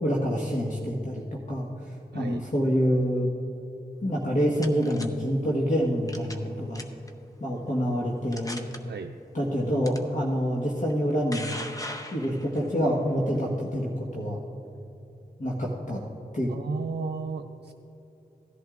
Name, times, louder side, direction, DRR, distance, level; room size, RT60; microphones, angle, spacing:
voice 1, 0.0-1.7 2.1-3.3 4.0-6.8 7.4-8.7 9.3-11.5 12.1-14.4 15.4-16.0 16.3-16.5, equal, 50° left, -4 dB, 1.4 m, -27 dB
sound 1, 4.2-5.1 6.1-6.5 6.7-7.1 7.7-7.8 8.3-8.8 9.8-10.0 10.9-12.7, left 1 dB, 20° left, 0.9 m, -38 dB
voice 2, 16.5-17.7, right 5 dB, 85° right, 3 dB, 0.4 m, -34 dB
17.0 x 11.0 x 2.5 m, 2.9 s
cardioid pair, 50°, 17 cm